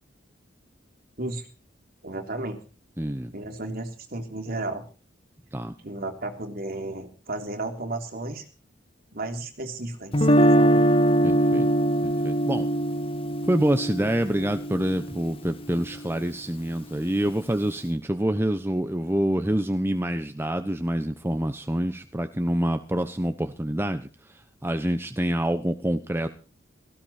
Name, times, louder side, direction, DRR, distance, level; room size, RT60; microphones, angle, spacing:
voice 1, 2.0-2.6 3.3-4.8 5.8-8.4 9.1-10.8, right 2 dB, 50° right, 4 dB, 3.3 m, -33 dB
voice 2, 3.0-3.3 5.5-5.7 11.2-11.7 12.0-12.7 13.5-24.1 24.6-26.3, right 1 dB, 10° right, 8 dB, 1.0 m, -26 dB
Guitar, 10.1-16.1, right 1 dB, 30° left, 1.6 m, -22 dB
17.5 x 15.5 x 4.4 m, 0.36 s
head